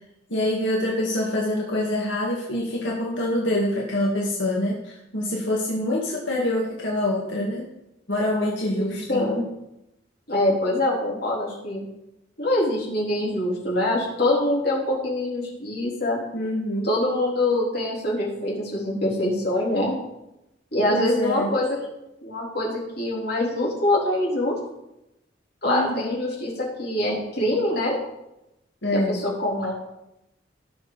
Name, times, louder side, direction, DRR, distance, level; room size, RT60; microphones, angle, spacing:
voice 1, 0.3-7.7 8.1-9.3 16.3-16.9 20.9-21.5 25.6-26.1 28.8-29.2, left 1 dB, 90° left, -3 dB, 1.9 m, -25 dB
voice 2, 8.8-9.4 10.3-11.8 12.4-16.2 16.8-20.0 20.7-21.8 22.2-24.6 25.6-28.0 28.9-29.7, left 1 dB, 60° left, -4 dB, 3.7 m, -24 dB
17.5 x 6.4 x 4.1 m, 0.89 s
head